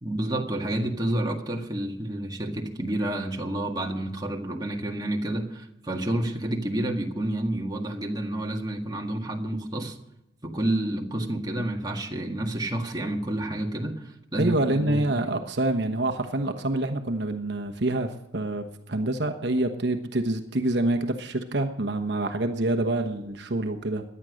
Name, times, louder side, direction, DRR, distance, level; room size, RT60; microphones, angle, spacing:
voice 1, 0.0-10.0 10.4-15.2, right 1 dB, 20° right, 1 dB, 1.7 m, -29 dB
voice 2, 14.4-24.0, right 2 dB, 60° right, 5 dB, 1.1 m, -26 dB
18.0 x 11.5 x 6.4 m, 0.88 s
head